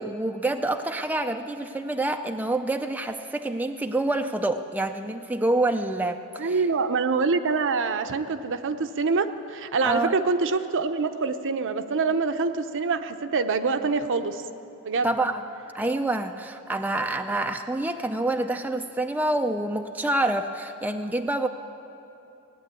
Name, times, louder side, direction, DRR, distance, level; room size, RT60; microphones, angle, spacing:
voice 1, 0.0-6.6 9.8-10.1 15.0-15.4 15.7-21.5, right 2 dB, 5° right, 5 dB, 0.4 m, -27 dB
voice 2, 6.4-14.4 14.8-15.2, right 4 dB, 60° right, 9 dB, 0.7 m, -25 dB
17.5 x 9.3 x 8.2 m, 2.8 s
head